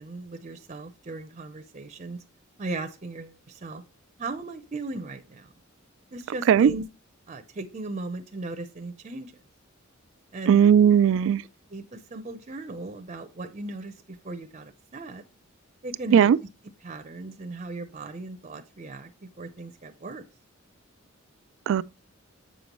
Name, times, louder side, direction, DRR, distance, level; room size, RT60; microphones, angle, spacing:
voice 1, 0.0-2.2 2.6-3.8 4.2-5.5 6.1-6.9 7.3-9.3 10.3-10.6 11.7-15.2 15.8-16.3 16.8-19.1 19.4-20.2, right 2 dB, 35° right, 0.6 m, -37 dB
voice 2, 10.5-11.4 16.1-16.4 21.7-21.8, right 8 dB, 65° right, 0.3 m, -17 dB
7.7 x 5.2 x 3.0 m
head